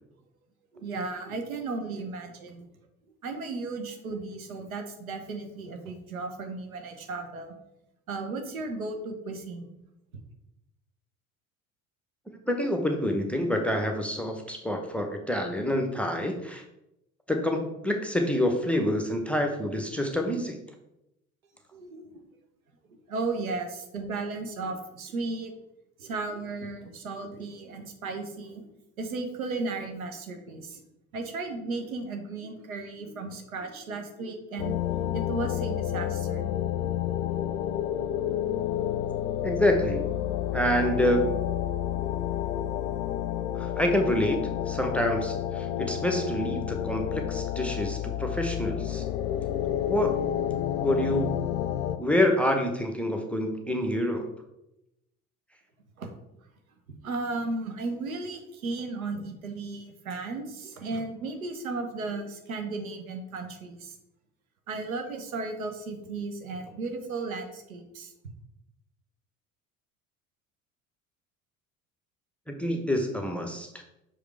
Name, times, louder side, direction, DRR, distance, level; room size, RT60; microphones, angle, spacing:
voice 1, 0.7-2.7 3.2-7.5 8.1-9.8 21.7-22.1 23.1-25.5 26.0-28.7 29.0-30.8 31.1-34.7 35.1-36.5 56.0-56.1 57.0-64.0 64.7-68.1, right 3 dB, 75° right, 5 dB, 1.0 m, -35 dB
voice 2, 12.5-16.6 17.3-20.6 39.4-40.2 40.5-41.5 43.6-44.4 44.7-49.0 49.9-50.2 50.8-51.4 52.0-54.3 72.5-73.7, left 1 dB, 5° left, 3 dB, 0.8 m, -27 dB
sound 1, 34.6-52.0, left 11 dB, 70° left, 0.5 m, -30 dB
6.2 x 4.9 x 3.3 m, 0.87 s
figure-of-eight pair, 60°, 42 cm